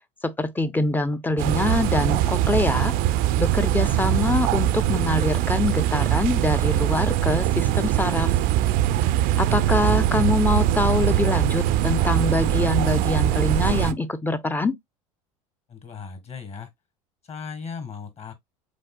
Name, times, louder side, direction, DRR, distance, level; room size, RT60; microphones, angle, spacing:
voice 1, 0.2-2.9 3.4-8.3 9.4-14.7, left 3 dB, 10° left, 0.6 m, -24 dB
sound 1, 1.4-13.9, right 13 dB, 55° right, 0.5 m, -22 dB
voice 2, 15.7-16.7 17.2-18.3, left 5 dB, 40° left, 1.7 m, -37 dB
5.2 x 3.8 x 2.2 m
hypercardioid pair, 85°, 17 cm